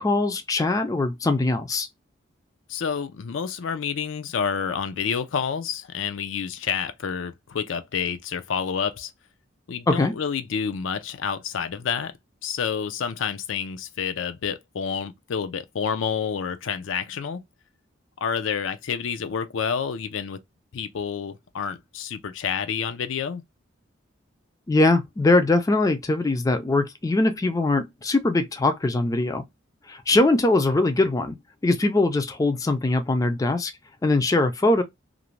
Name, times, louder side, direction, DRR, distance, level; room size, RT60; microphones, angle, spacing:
voice 1, 0.0-1.9 9.9-10.1 24.7-29.4 29.9-31.4 31.6-33.7 34.0-34.8, left 2 dB, 20° left, 0.3 m, -21 dB
voice 2, 2.7-9.1 9.7-12.1 12.4-17.4 18.2-20.4 20.7-23.4, left 6 dB, 80° left, 0.4 m, -29 dB
2.5 x 2.1 x 3.0 m
head